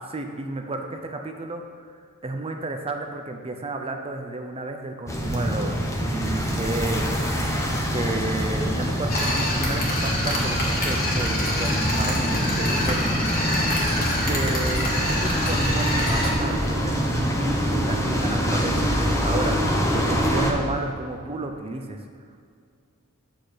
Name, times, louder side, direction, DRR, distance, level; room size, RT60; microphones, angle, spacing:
voice 1, 0.1-5.8 6.1-7.1 7.9-13.0 14.0-19.6 19.9-22.0, right 2 dB, 25° right, 4 dB, 0.6 m, -32 dB
sound 1, 5.1-20.5, equal, 15° left, 1.1 m, -25 dB
sound 2, 9.1-16.3, left 1 dB, 45° left, 1.9 m, -27 dB
9.8 x 6.4 x 5.0 m, 2.2 s
head